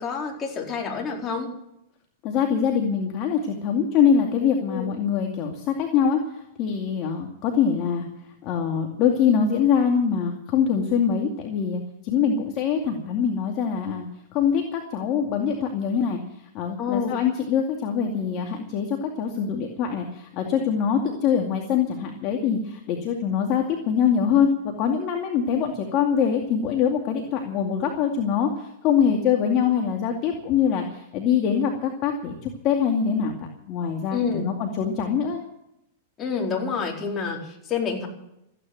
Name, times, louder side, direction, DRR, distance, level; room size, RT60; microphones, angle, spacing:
voice 1, 0.0-1.5 4.7-4.9 16.8-17.2 34.1-34.5 36.2-38.1, left 5 dB, 30° left, 0 dB, 4.4 m, -28 dB
voice 2, 2.2-8.1 8.4-16.2 16.5-24.5 24.8-35.4, left 7 dB, 45° left, 2 dB, 2.3 m, -24 dB
14.5 x 9.9 x 9.1 m, 0.82 s
hypercardioid pair, 110°, 0 cm